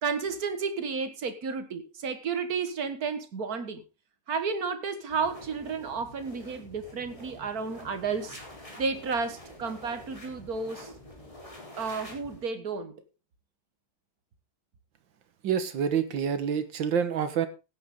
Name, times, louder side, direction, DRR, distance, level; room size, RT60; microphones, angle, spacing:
voice 1, 0.0-3.8 4.3-8.4 8.8-10.9 11.8-13.0, right 5 dB, 55° right, 1.9 m, -32 dB
sound 1, 5.1-12.4, left 1 dB, 15° left, 3.9 m, -47 dB
voice 2, 15.4-17.5, right 7 dB, 80° right, 2.1 m, -27 dB
16.0 x 9.8 x 3.8 m
omnidirectional pair, 2.0 m